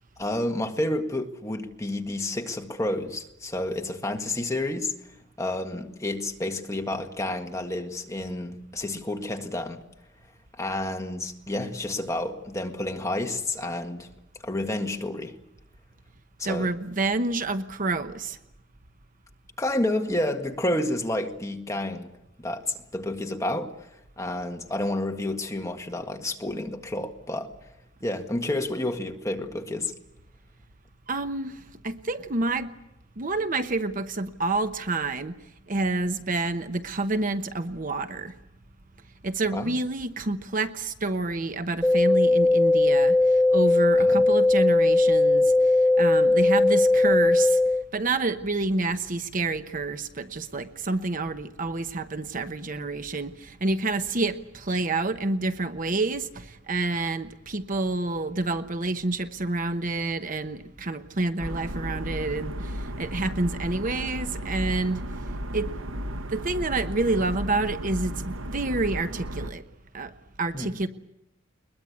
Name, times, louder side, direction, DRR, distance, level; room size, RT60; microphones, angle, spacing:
voice 1, 0.2-4.9 5.4-9.8 10.6-14.1 14.4-15.4 16.4-16.7 19.6-22.1 22.4-23.7 24.2-27.5 28.0-29.9 39.5-39.7 44.0-44.2 70.5-70.8, left 1 dB, 15° left, 1.7 m, -30 dB
voice 2, 16.4-18.4 31.1-32.7 33.2-35.4 35.7-38.3 39.2-47.6 47.9-65.0 65.5-65.7 66.3-69.7 69.9-70.9, right 2 dB, 40° right, 0.9 m, -28 dB
sound 1, 41.8-47.8, left 2 dB, 5° right, 1.3 m, -19 dB
sound 2, 61.4-69.5, equal, 75° right, 1.1 m, -34 dB
21.5 x 21.5 x 8.4 m
head